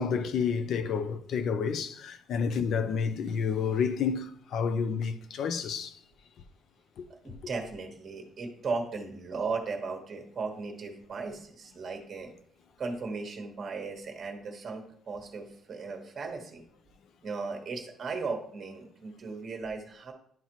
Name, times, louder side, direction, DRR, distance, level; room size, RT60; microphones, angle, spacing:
voice 1, 0.0-6.0 7.0-7.1, left 6 dB, 50° left, 0.5 m, -30 dB
voice 2, 7.2-12.3 12.8-16.6 17.2-20.1, right 4 dB, 30° right, 1.2 m, -36 dB
10.5 x 4.1 x 3.0 m
cardioid pair, 165°, 0 cm